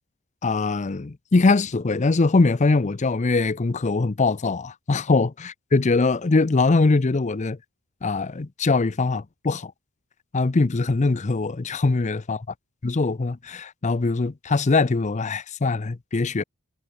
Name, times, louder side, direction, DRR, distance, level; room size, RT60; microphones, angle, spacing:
voice 1, 0.4-5.3 5.7-7.6 8.0-9.7 10.3-12.4 12.8-16.4, left 3 dB, 30° left, 0.5 m, -22 dB
head